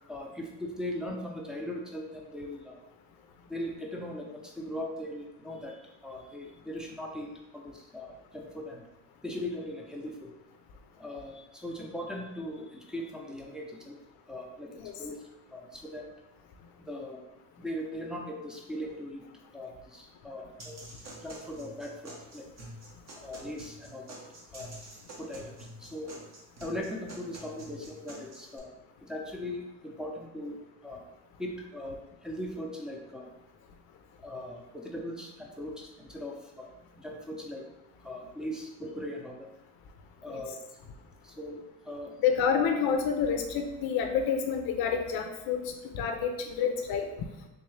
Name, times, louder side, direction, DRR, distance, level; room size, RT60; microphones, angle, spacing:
voice 1, 0.1-2.8 3.5-8.8 9.2-10.3 11.0-14.0 14.3-15.2 15.5-16.0 16.9-17.2 17.6-19.2 19.5-20.8 21.2-22.5 23.2-24.2 24.5-24.7 25.2-26.1 26.6-28.7 29.0-30.6 30.8-31.0 31.4-33.3 34.2-36.7 37.0-37.7 38.0-39.5 40.2-40.6 41.2-42.1, left 1 dB, ahead, -1 dB, 0.7 m, -39 dB
sound 1, 20.6-28.6, right 1 dB, 40° right, 1.2 m, -47 dB
voice 2, 42.2-47.1, left 6 dB, 65° left, 5 dB, 0.5 m, -28 dB
3.7 x 2.6 x 3.2 m, 0.99 s
supercardioid pair, 70°, 39 cm